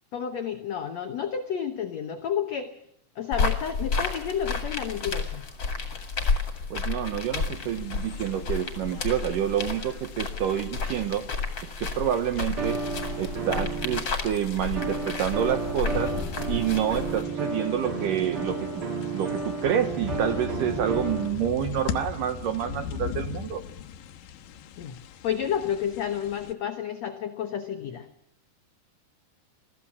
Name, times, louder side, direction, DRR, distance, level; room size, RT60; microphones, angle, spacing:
voice 1, 0.1-2.8 3.2-5.4 24.8-25.0 25.2-28.1, left 8 dB, 85° left, 7 dB, 1.5 m, -31 dB
sound 1, 3.3-17.2, left 4 dB, 35° left, 2.3 m, -31 dB
voice 2, 6.7-11.3 11.8-12.8 13.2-16.1 16.5-18.8 19.1-23.6, right 9 dB, 75° right, 9 dB, 2.1 m, -28 dB
sound 2, 7.1-7.2 8.3-9.3 9.7-10.7 12.6-14.1 14.8-21.3, right 4 dB, 45° right, 2.1 m, -33 dB
sound 3, 7.3-26.5, left 8 dB, 70° left, 2.5 m, -40 dB
21.5 x 14.5 x 8.5 m, 0.74 s
omnidirectional pair, 4.8 m